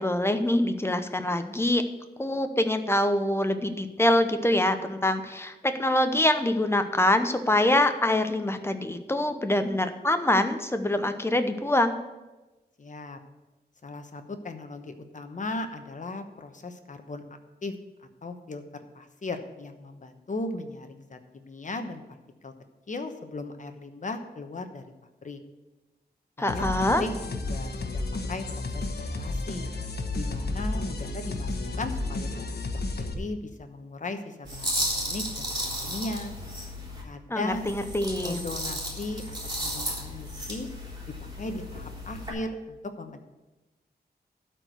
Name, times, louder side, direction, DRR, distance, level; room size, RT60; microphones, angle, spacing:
voice 1, 0.0-1.8 2.2-12.0 26.4-27.0 37.3-38.4, left 1 dB, 15° left, 8 dB, 0.8 m, -25 dB
voice 2, 12.8-13.2 13.8-17.2 17.6-17.7 18.2-18.6 18.9-22.0 22.4-22.5 22.9-24.8 25.2-25.4 26.4-26.7 27.0-27.1 27.5-28.0 28.3-29.7 30.1-36.3 37.0-37.7 38.2-39.2 39.6-40.7 41.1-43.2, left 2 dB, 45° left, 7 dB, 1.0 m, -37 dB
sound 1, 26.5-33.1, left 2 dB, 70° left, 1.2 m, -32 dB
sound 2, 34.5-37.0 37.5-42.3, equal, 25° right, 3.6 m, -34 dB
12.5 x 4.6 x 8.0 m, 1.1 s
wide cardioid pair, 120°, 17 cm